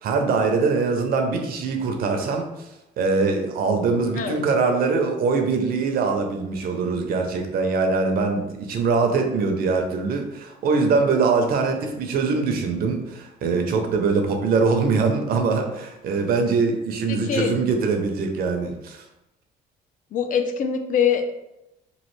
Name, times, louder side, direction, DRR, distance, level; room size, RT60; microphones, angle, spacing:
voice 1, 0.0-2.7 3.0-19.0, right 4 dB, 60° right, 4 dB, 0.6 m, -23 dB
voice 2, 17.1-17.5 20.1-21.3, left 7 dB, 50° left, 6 dB, 0.4 m, -23 dB
3.1 x 2.4 x 3.1 m, 0.91 s
cardioid pair, 110°, 17 cm